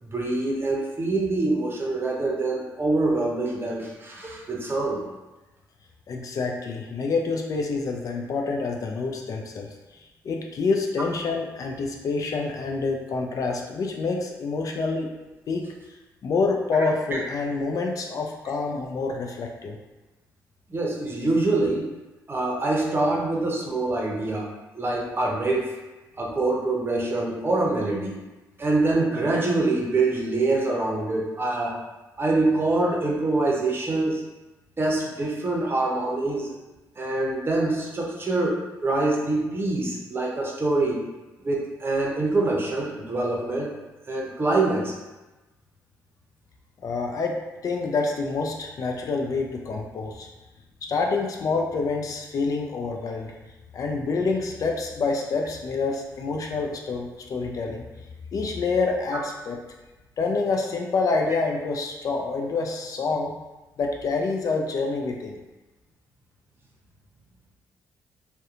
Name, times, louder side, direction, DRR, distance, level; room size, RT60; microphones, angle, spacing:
voice 1, 0.0-5.0 17.1-17.2 20.7-21.9 22.3-24.5 24.7-25.8 26.2-28.2 28.6-31.8 32.2-34.2 34.8-36.6 37.0-41.0 41.4-43.7 44.1-44.9, right 2 dB, 30° right, -2 dB, 0.7 m, -25 dB
voice 2, 6.1-15.1 15.5-15.7 16.2-19.8 46.8-47.4 47.6-50.3 50.9-53.3 53.7-57.9 58.3-59.6 60.2-63.3 63.8-65.4, left 4 dB, 55° left, 1 dB, 0.4 m, -27 dB
2.7 x 2.1 x 2.4 m, 1.1 s
supercardioid pair, 60°, 7 cm